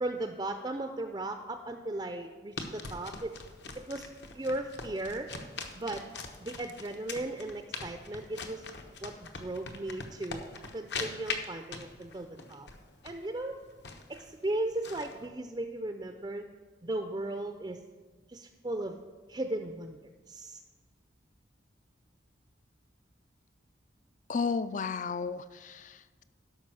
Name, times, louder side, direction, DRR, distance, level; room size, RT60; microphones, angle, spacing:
voice 1, 0.0-3.3 3.8-5.3 5.8-6.1 6.4-8.7 9.0-10.4 10.7-12.7 13.0-13.6 14.1-16.4 16.8-17.8 18.3-19.0 19.3-20.0 20.3-20.6, right 2 dB, 20° right, 6 dB, 0.4 m, -36 dB
sound 1, 2.6-15.3, left 4 dB, 65° left, 1.0 m, -42 dB
voice 2, 24.3-26.2, left 5 dB, 40° left, 14 dB, 0.4 m, -33 dB
12.5 x 5.6 x 6.2 m, 1.3 s
head